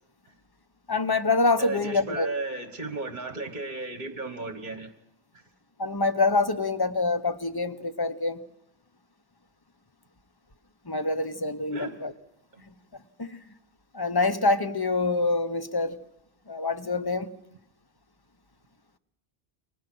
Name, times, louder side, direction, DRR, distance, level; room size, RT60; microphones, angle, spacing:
voice 1, 0.9-2.3 5.8-8.4 10.8-12.1 12.7-12.8 13.2-13.4 13.9-16.0 16.5-17.3, left 3 dB, 20° left, 0.9 m, -26 dB
voice 2, 1.6-4.9 5.3-5.4 11.7-12.0 12.5-12.6, right 3 dB, 45° right, 1.5 m, -35 dB
29.5 x 24.0 x 6.2 m
omnidirectional pair, 1.1 m